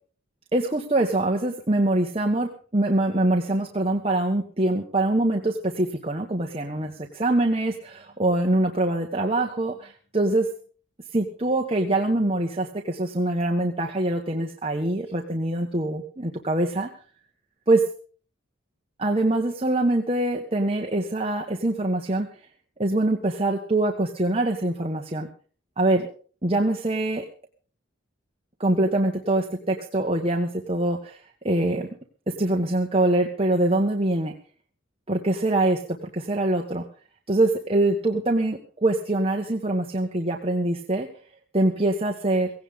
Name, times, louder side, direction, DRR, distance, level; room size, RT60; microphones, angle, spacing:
voice 1, 0.5-10.5 11.1-16.9 17.7-17.8 19.0-22.3 22.8-25.3 25.8-26.1 26.4-27.2 28.6-31.9 32.3-34.4 35.1-36.8 37.3-41.1 41.5-42.5, right 2 dB, 30° right, 2 dB, 1.5 m, -24 dB
17.0 x 17.0 x 3.8 m, 0.41 s
head